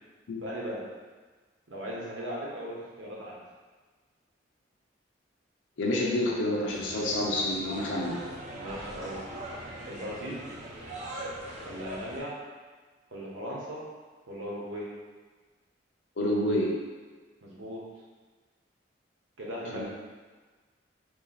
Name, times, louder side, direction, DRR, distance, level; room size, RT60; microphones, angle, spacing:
voice 1, 0.4-0.8 1.7-3.4 8.5-9.3 9.9-10.4 11.6-12.3 13.1-13.8 14.3-14.9 17.4-17.8 19.4-19.9, equal, 90° right, -5 dB, 1.0 m, -38 dB
voice 2, 5.8-8.2 16.2-16.7 19.7-19.8, left 1 dB, 80° left, -3 dB, 0.6 m, -28 dB
sound 1, 6.7-12.2, right 1 dB, 40° right, 0.6 m, -41 dB
3.0 x 2.7 x 3.9 m, 1.4 s
head